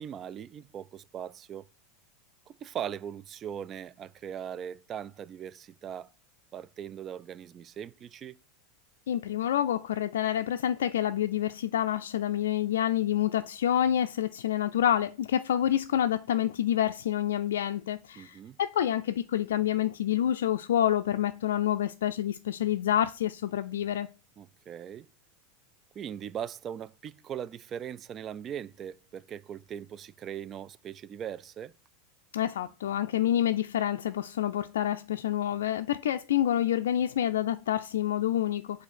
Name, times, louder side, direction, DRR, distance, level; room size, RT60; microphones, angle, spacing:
voice 1, 0.0-1.7 2.5-6.1 6.5-8.4 18.2-18.6 24.4-25.1 26.0-31.7, right 9 dB, 35° right, 0.3 m, -40 dB
voice 2, 9.1-24.1 32.3-38.8, left 11 dB, 80° left, 0.3 m, -28 dB
7.8 x 2.7 x 5.9 m
hypercardioid pair, 100°, 0 cm